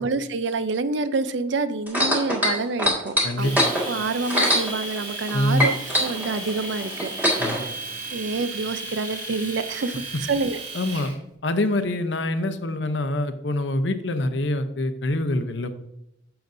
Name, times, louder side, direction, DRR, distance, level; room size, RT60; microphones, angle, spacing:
voice 1, 0.0-7.7 8.1-10.0 10.3-10.6, right 3 dB, 70° right, 13 dB, 0.5 m, -27 dB
sound 1, 1.9-5.3 5.6-7.6 8.4-8.5, left 1 dB, 10° right, 1.8 m, -23 dB
voice 2, 3.2-3.7 5.3-5.7 7.4-7.7 10.7-11.1 11.4-15.8, left 1 dB, 70° left, 9 dB, 0.8 m, -25 dB
Domestic sounds home sounds, 3.4-11.1, right 3 dB, 45° right, 2.2 m, -35 dB
10.5 x 6.9 x 2.6 m, 0.80 s
head